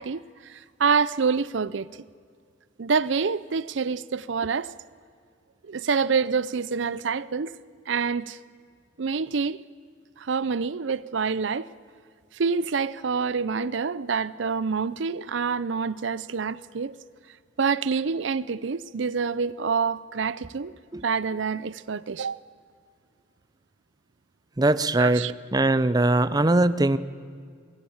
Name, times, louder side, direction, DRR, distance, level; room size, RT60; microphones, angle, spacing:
voice 1, 0.0-1.9 2.8-4.7 5.6-7.5 7.9-8.4 9.0-9.6 10.2-11.7 12.3-16.9 17.6-20.7 21.0-22.4 25.0-25.3, right 5 dB, 70° right, 0.6 m, -27 dB
voice 2, 24.6-27.0, right 2 dB, 20° right, 0.7 m, -21 dB
24.5 x 21.5 x 7.2 m
head